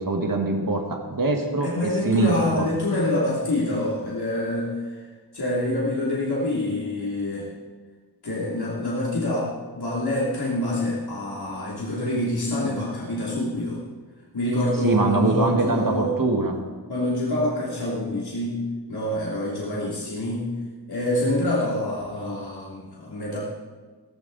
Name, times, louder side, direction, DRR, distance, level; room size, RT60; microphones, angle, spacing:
voice 1, 0.0-2.7 14.8-16.5, right 2 dB, 55° right, 2 dB, 1.9 m, -23 dB
voice 2, 1.6-5.0 5.3-7.5 8.2-13.8 14.3-16.2 16.9-20.5 20.9-23.5, left 1 dB, 65° left, -6 dB, 3.1 m, -26 dB
17.0 x 16.0 x 4.2 m, 1.4 s
wide cardioid pair, 75°, 41 cm